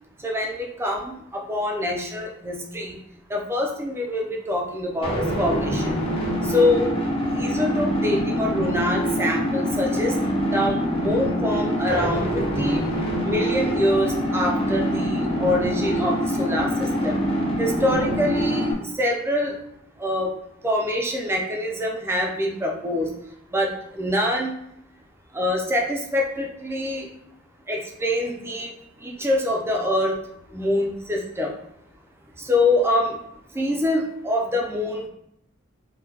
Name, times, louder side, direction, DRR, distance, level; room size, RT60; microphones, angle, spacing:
voice 1, 0.2-3.0 3.3-5.9 6.4-6.9 7.3-10.2 10.5-12.3 12.6-12.9 13.2-17.2 17.6-19.5 20.0-20.3 20.6-23.1 23.5-24.5 25.3-27.1 27.7-28.7 29.0-30.1 30.5-31.5 32.4-33.2 33.5-35.1, left 1 dB, 10° right, 0 dB, 0.5 m, -25 dB
sound 1, 5.0-18.7, equal, 25° left, 0.6 m, -24 dB
3.7 x 2.3 x 2.8 m, 0.76 s
head